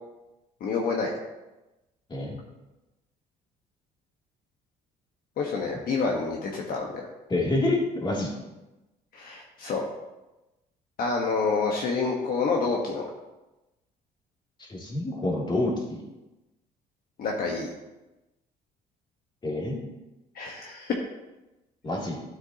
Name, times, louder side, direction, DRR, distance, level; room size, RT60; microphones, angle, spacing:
voice 1, 0.6-1.1 5.4-7.0 9.1-9.8 11.0-13.1 17.2-17.7 20.3-21.0, left 4 dB, 60° left, 0 dB, 1.3 m, -28 dB
voice 2, 7.3-8.3 14.6-16.0 19.4-19.8 21.8-22.2, left 2 dB, 25° left, -3 dB, 2.7 m, -28 dB
12.5 x 7.8 x 2.9 m, 1.0 s
cardioid pair, 110°, 17 cm